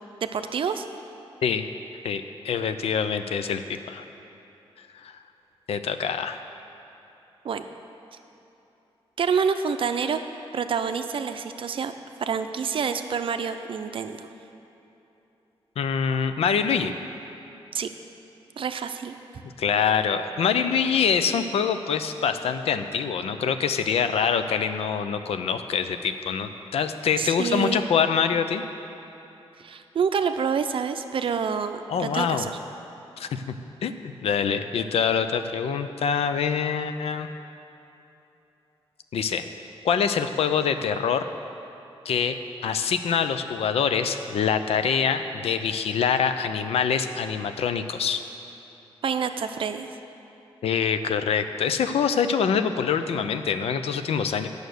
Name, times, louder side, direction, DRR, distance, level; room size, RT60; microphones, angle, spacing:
voice 1, 0.3-0.9 7.4-7.7 9.2-10.2 10.5-11.9 12.2-14.3 17.7-17.9 18.6-19.2 27.2-27.8 29.6-32.5 49.0-49.9, right 6 dB, 60° right, 8 dB, 0.5 m, -27 dB
voice 2, 2.0-4.0 5.0-5.1 5.7-6.4 15.8-16.9 19.6-28.6 31.9-32.5 33.2-33.4 33.8-33.9 34.2-37.3 39.1-39.5 39.8-41.3 42.1-42.4 42.6-48.2 50.6-54.5, left 7 dB, 80° left, 9 dB, 0.5 m, -25 dB
9.1 x 6.5 x 6.5 m, 3.0 s
cardioid pair, 95°, 10 cm